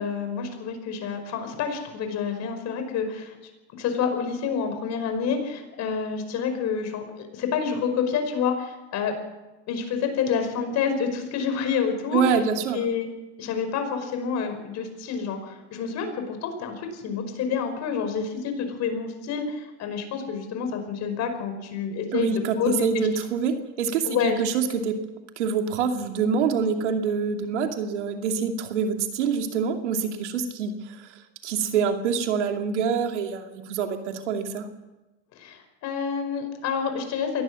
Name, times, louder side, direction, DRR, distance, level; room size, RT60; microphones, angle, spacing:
voice 1, 0.0-3.4 3.8-9.1 9.7-12.2 12.7-13.1 13.4-22.3 22.6-23.1 24.0-24.4 35.4-37.4, left 6 dB, 50° left, 6 dB, 5.4 m, -28 dB
voice 2, 12.1-12.8 22.1-25.0 25.4-31.1 31.4-34.7, right 6 dB, 80° right, 5 dB, 2.5 m, -26 dB
23.0 x 18.0 x 6.3 m, 1.1 s
hypercardioid pair, 95°, 35 cm